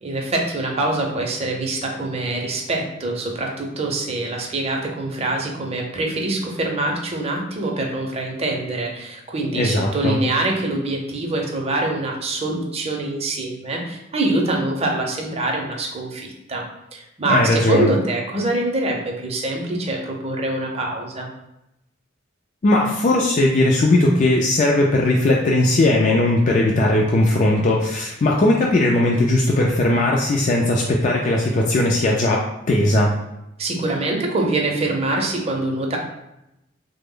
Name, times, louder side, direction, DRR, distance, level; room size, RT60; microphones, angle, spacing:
voice 1, 0.0-16.6 16.9-21.3 33.6-36.0, right 2 dB, 30° right, 0 dB, 0.6 m, -24 dB
voice 2, 9.5-10.2 17.3-17.9 22.6-33.1, left 1 dB, 40° left, -1 dB, 0.3 m, -18 dB
3.3 x 2.0 x 3.7 m, 0.89 s
head